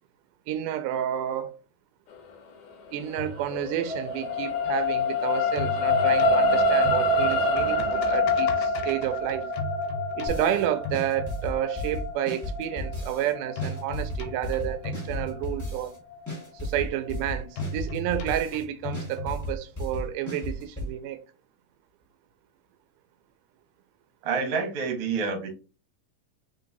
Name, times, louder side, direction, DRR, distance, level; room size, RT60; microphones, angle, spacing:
voice 1, 0.5-1.6 2.9-9.5 10.2-15.9 16.5-21.2, right 11 dB, 90° right, 2.1 m, -30 dB
sound 1, 3.1-5.2 5.4-11.9 13.6-15.9 17.6-19.9, left 2 dB, 90° left, 2.4 m, -37 dB
sound 2, 3.1-15.6 16.1-16.2, left 2 dB, 70° left, 1.6 m, -26 dB
sound 3, 10.3-10.6 10.9-13.3 13.6-16.0 16.3-18.6 18.9-20.9, left 1 dB, 20° left, 0.4 m, -34 dB
voice 2, 24.2-25.5, right 5 dB, 60° right, 1.8 m, -28 dB
4.4 x 3.8 x 2.6 m
omnidirectional pair, 3.6 m